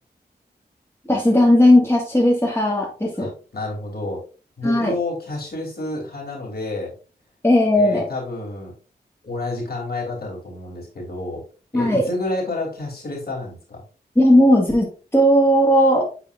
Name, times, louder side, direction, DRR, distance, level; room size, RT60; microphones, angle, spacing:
voice 1, 1.1-3.3 4.6-4.9 7.4-8.0 11.7-12.1 14.2-14.9 15.1-16.1, left 1 dB, 15° left, -2 dB, 2.0 m, -16 dB
voice 2, 3.1-4.2 4.6-6.9 7.7-8.7 9.2-11.4 11.7-13.8, left 2 dB, 60° left, -2 dB, 3.2 m, -30 dB
9.0 x 4.1 x 2.6 m, 0.35 s
cardioid pair, 60°, 18 cm